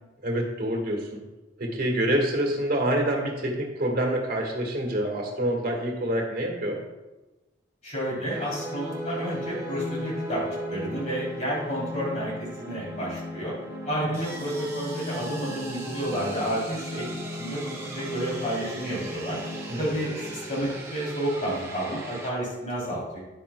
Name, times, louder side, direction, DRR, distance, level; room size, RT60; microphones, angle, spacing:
voice 1, 0.2-1.2 1.6-6.8 13.9-14.0 19.7-20.0, right 1 dB, 50° right, 0 dB, 1.7 m, -27 dB
voice 2, 7.8-10.4 10.7-13.5 13.8-17.1 17.3-19.4 19.8-23.2, right 1 dB, 40° left, -5 dB, 3.0 m, -30 dB
sound 1, 8.3-22.3, equal, 15° right, 1.5 m, -36 dB
10.5 x 9.6 x 2.2 m, 1.1 s
head